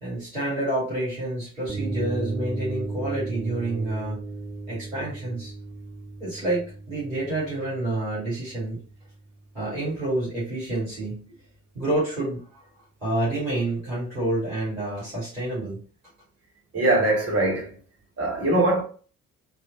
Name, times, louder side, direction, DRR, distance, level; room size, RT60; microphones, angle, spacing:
voice 1, 0.0-4.2 4.7-5.5 6.2-8.8 9.5-11.3 11.7-12.6 13.0-15.8, right 2 dB, 90° right, 1.4 m, -28 dB
sound 1, 1.7-9.4, right 3 dB, 20° right, 1.7 m, -35 dB
voice 2, 16.7-17.7 18.2-18.8, right 2 dB, 40° right, 1.8 m, -22 dB
3.0 x 3.0 x 3.8 m
figure-of-eight pair, 40°, 39 cm